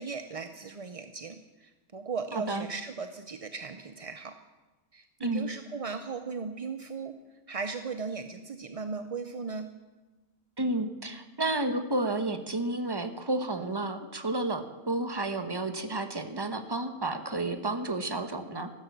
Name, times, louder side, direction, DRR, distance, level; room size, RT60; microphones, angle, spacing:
voice 1, 0.0-4.4 4.9-7.2 7.5-9.7, right 5 dB, 40° right, 8 dB, 0.5 m, -37 dB
voice 2, 2.3-2.7 5.2-5.6 10.6-18.7, right 2 dB, 20° right, 8 dB, 1.0 m, -31 dB
15.0 x 12.0 x 7.4 m, 1.2 s
omnidirectional pair, 1.5 m